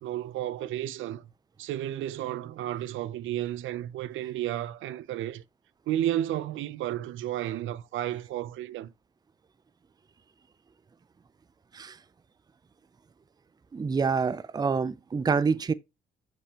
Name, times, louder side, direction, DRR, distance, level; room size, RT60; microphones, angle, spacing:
voice 1, 0.0-1.3 1.6-5.4 5.9-8.9, right 12 dB, 80° right, 0.5 m, -32 dB
voice 2, 13.7-15.7, right 5 dB, 20° right, 0.4 m, -27 dB
7.4 x 5.3 x 2.9 m
cardioid pair, 90°, 20 cm